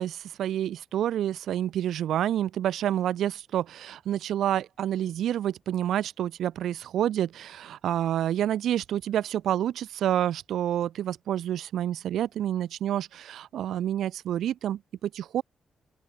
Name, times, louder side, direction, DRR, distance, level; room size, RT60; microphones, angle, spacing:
voice 1, 0.0-15.4, right 11 dB, 85° right, 2.2 m, -28 dB
open air
cardioid pair, 120°, 0 cm